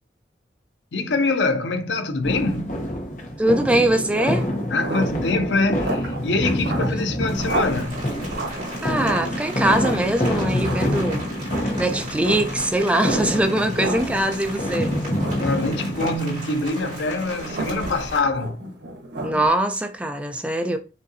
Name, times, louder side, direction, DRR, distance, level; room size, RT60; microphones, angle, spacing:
voice 1, 0.9-2.8 4.7-8.0 15.4-18.6, left 3 dB, 90° left, 0.6 m, -24 dB
sound 1, 2.2-16.2, equal, 45° left, 0.9 m, -27 dB
voice 2, 3.4-4.4 6.8-7.0 8.8-11.2 11.8-15.0 19.2-20.8, right 1 dB, 5° right, 0.3 m, -22 dB
sound 2, 3.5-19.5, right 2 dB, 80° right, 1.4 m, -33 dB
Rain, 7.3-18.2, equal, 50° right, 2.1 m, -37 dB
5.2 x 2.6 x 2.7 m
head